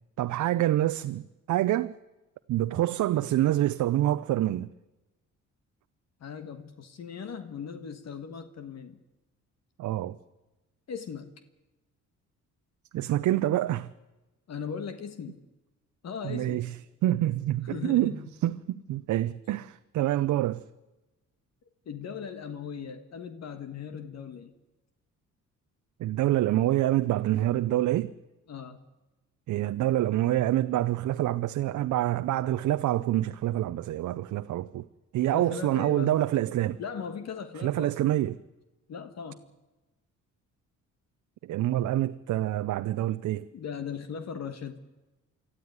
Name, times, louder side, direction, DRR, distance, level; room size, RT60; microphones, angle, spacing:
voice 1, 0.2-1.9 2.5-4.7 9.8-10.2 12.9-13.9 16.2-16.7 17.0-18.2 18.4-20.6 26.0-28.1 29.5-34.9 35.1-36.8 37.6-38.4 41.4-43.5, right 14 dB, 75° right, 0.7 m, -26 dB
voice 2, 6.2-9.0 10.9-11.3 14.5-15.4 16.0-16.7 17.6-18.3 21.8-24.5 28.5-28.8 35.3-36.2 36.8-38.1 38.9-39.4 43.5-44.8, left 6 dB, 60° left, 1.6 m, -38 dB
24.5 x 14.0 x 9.5 m
cardioid pair, 90°, 30 cm